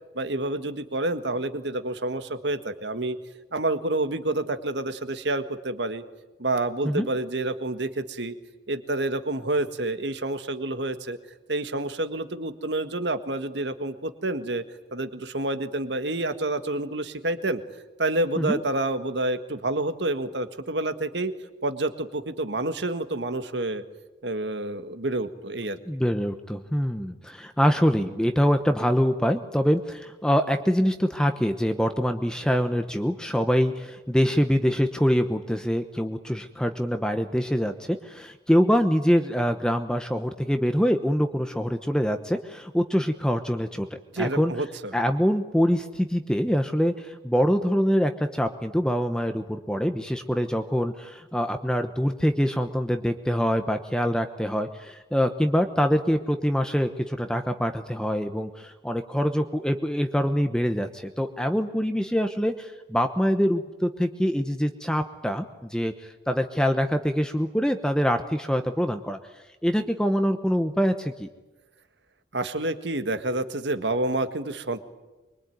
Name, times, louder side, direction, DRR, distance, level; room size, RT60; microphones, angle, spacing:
voice 1, 0.1-3.2 3.5-6.0 6.4-8.4 8.7-11.2 11.5-14.6 14.9-17.6 18.0-21.3 21.6-23.8 24.2-25.8 44.1-45.0 72.3-74.8, right 2 dB, 70° right, 9 dB, 1.8 m, -28 dB
voice 2, 25.9-43.9 44.2-44.5 44.9-69.2 69.6-71.3, equal, 5° left, 7 dB, 1.0 m, -24 dB
24.5 x 23.0 x 9.4 m, 1.1 s
head